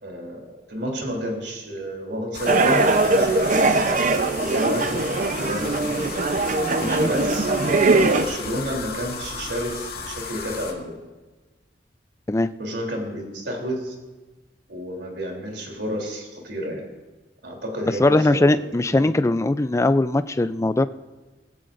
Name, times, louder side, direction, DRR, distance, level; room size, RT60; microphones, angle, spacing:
voice 1, 0.0-3.8 4.4-5.1 5.4-6.1 7.0-7.5 8.0-11.0 12.6-13.9 14.7-16.8 17.4-18.5 19.0-19.1, equal, 80° right, 0 dB, 3.3 m, -31 dB
sound 1, 2.3-10.7, left 4 dB, 60° left, 2.2 m, -34 dB
sound 2, 2.5-8.3, right 3 dB, 45° right, 0.7 m, -21 dB
voice 2, 18.0-20.8, left 2 dB, 15° left, 13 dB, 0.4 m, -20 dB
20.0 x 15.5 x 2.6 m, 1.3 s
head